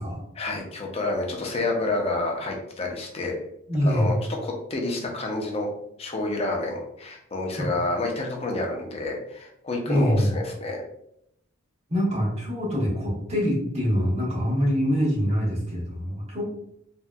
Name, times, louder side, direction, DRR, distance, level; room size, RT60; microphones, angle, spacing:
voice 1, 0.4-3.3 3.8-4.2 4.4-5.7 6.0-10.8, left 2 dB, 30° left, 1 dB, 0.5 m, -29 dB
voice 2, 3.7-4.2 7.6-7.7 9.9-10.3 11.9-16.4, equal, 30° right, -3 dB, 0.9 m, -24 dB
2.9 x 2.7 x 2.2 m, 0.75 s
head